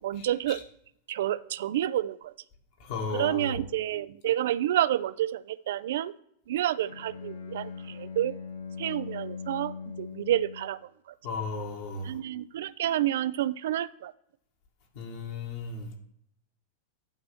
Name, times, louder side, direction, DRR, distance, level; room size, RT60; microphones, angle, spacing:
voice 1, 0.0-0.6 1.1-2.3 3.1-6.1 6.5-8.4 8.8-11.1 12.0-14.1, right 12 dB, 55° right, 17 dB, 0.3 m, -29 dB
voice 2, 2.8-3.6 11.2-12.1 14.9-16.0, left 3 dB, 50° left, 2 dB, 1.7 m, -34 dB
Bowed string instrument, 6.7-10.8, left 5 dB, 75° left, 1.6 m, -40 dB
8.9 x 3.0 x 6.1 m, 0.75 s
figure-of-eight pair, 90°, 0 cm